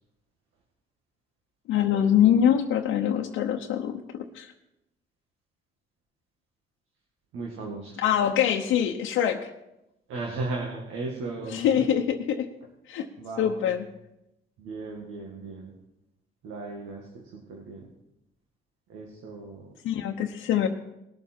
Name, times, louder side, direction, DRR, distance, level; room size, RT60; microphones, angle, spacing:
voice 1, 1.7-4.5 8.0-9.5 11.5-12.5 12.9-13.1 13.4-13.9 19.8-20.7, left 9 dB, 90° left, 1 dB, 0.9 m, -24 dB
voice 2, 7.3-8.0 10.1-11.9 13.2-13.7 14.6-15.7 16.4-17.9 18.9-19.8, right 3 dB, 90° right, 0 dB, 2.0 m, -36 dB
19.5 x 7.3 x 4.5 m, 0.89 s
cardioid pair, 90°, 20 cm